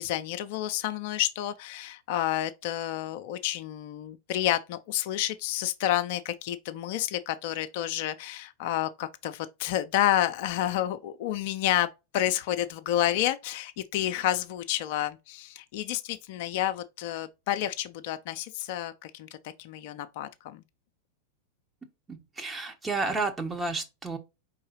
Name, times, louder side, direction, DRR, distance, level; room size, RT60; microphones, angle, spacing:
voice 1, 0.0-20.6, left 13 dB, 55° left, 0.5 m, -30 dB
voice 2, 22.1-24.2, right 3 dB, 15° right, 1.0 m, -31 dB
4.6 x 3.6 x 3.0 m
hypercardioid pair, 95°, 0 cm